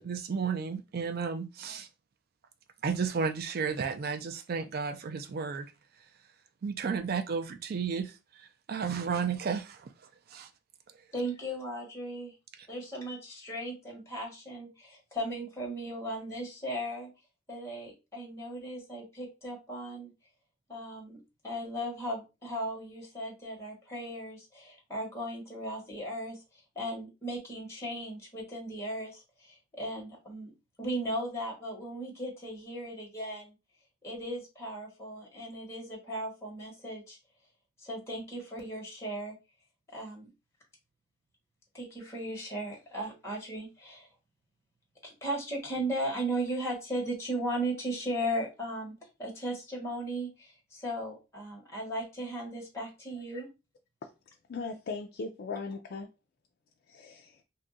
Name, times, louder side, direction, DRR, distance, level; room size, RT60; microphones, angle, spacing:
voice 1, 0.0-1.9 2.8-5.7 6.6-8.1 8.4-9.9 10.3-10.5, right 5 dB, 50° right, 0.4 m, -33 dB
voice 2, 11.1-12.3 12.7-17.1 17.5-20.1 20.7-21.2 21.4-26.4 26.7-30.5 30.8-33.5 34.0-37.2 37.8-39.3 39.9-40.3 41.7-44.1 45.0-48.9 49.2-53.5, right 1 dB, 15° left, 1.3 m, -37 dB
voice 3, 54.5-56.1 56.9-57.4, left 4 dB, 55° left, 0.4 m, -38 dB
2.6 x 2.4 x 3.9 m
head